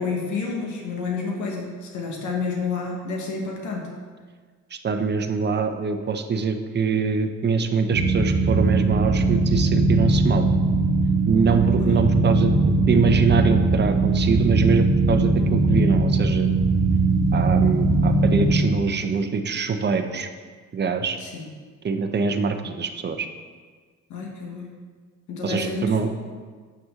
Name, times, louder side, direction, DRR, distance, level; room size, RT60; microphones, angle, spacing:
voice 1, 0.0-3.9 11.8-11.9 21.2-21.4 24.1-24.7 25.3-26.0, left 4 dB, 75° left, 0 dB, 1.4 m, -29 dB
voice 2, 4.7-10.5 11.3-16.5 17.3-20.3 20.7-21.2 21.8-23.3 25.4-26.1, right 5 dB, 35° right, 7 dB, 0.7 m, -24 dB
sound 1, 7.9-18.7, right 3 dB, 70° right, 1.2 m, -20 dB
7.8 x 6.0 x 3.7 m, 1.5 s
cardioid pair, 90°, 30 cm